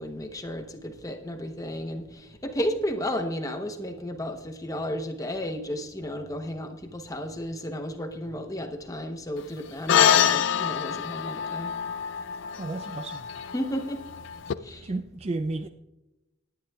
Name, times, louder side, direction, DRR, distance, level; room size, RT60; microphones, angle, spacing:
voice 1, 0.0-11.7 13.5-14.0 14.6-14.9, equal, 15° left, 0.8 m, -33 dB
sound 1, 9.9-14.5, left 9 dB, 55° left, 0.3 m, -25 dB
voice 2, 12.6-13.3 14.5-15.7, right 2 dB, 30° right, 0.3 m, -33 dB
18.5 x 10.5 x 2.3 m
head